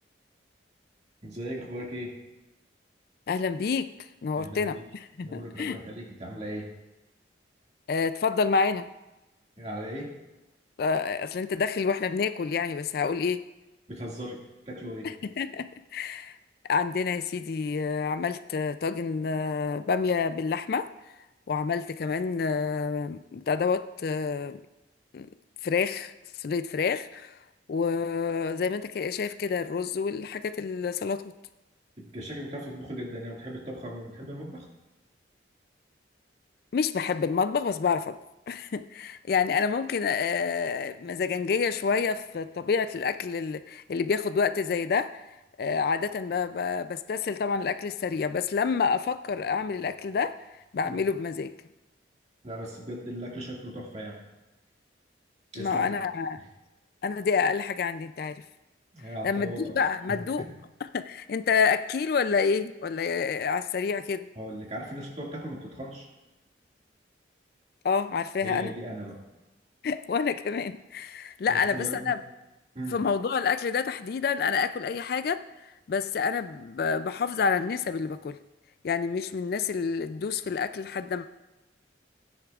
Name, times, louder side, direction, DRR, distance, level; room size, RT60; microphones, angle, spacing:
voice 1, 1.2-2.1 4.3-4.8 5.2-6.7 9.6-10.1 13.9-14.4 14.7-15.1 32.0-34.7 50.8-51.0 52.4-54.2 55.5-56.0 56.4-56.5 58.9-59.8 60.1-60.5 64.4-66.1 68.4-69.2 71.5-72.2 72.7-73.0, equal, 35° right, -2 dB, 2.1 m, -38 dB
voice 2, 3.3-3.9 4.2-5.8 7.9-8.9 10.8-13.5 15.0-16.4 16.7-20.9 21.5-24.6 25.1-25.3 25.6-26.1 26.4-27.4 27.7-31.3 36.7-38.2 38.5-45.2 45.6-50.4 50.7-51.5 55.6-56.4 57.0-58.4 59.2-60.5 60.9-64.3 67.8-68.7 69.8-72.2 72.9-75.4 75.9-78.4 78.8-81.3, left 5 dB, 55° left, 12 dB, 0.3 m, -28 dB
16.5 x 10.0 x 2.4 m, 1.0 s
head